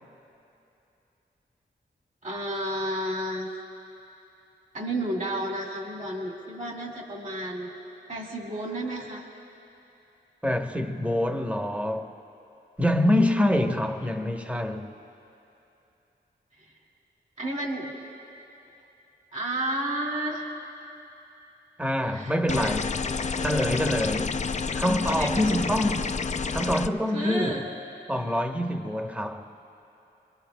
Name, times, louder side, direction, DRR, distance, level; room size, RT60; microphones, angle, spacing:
voice 1, 2.2-3.5 4.7-7.7 8.1-9.3 17.4-18.0 19.3-20.5 22.0-22.3 22.6-22.7 25.1-25.9 27.1-27.6, right 1 dB, 40° right, 2.2 m, -32 dB
voice 2, 10.4-12.1 12.8-14.9 21.8-23.0 23.4-24.4 24.7-26.1 26.5-27.7 28.1-29.5, left 1 dB, 5° right, 1.0 m, -26 dB
sound 1, 22.5-26.9, left 5 dB, 40° left, 0.4 m, -29 dB
27.0 x 23.0 x 2.2 m
cardioid pair, 50°, 19 cm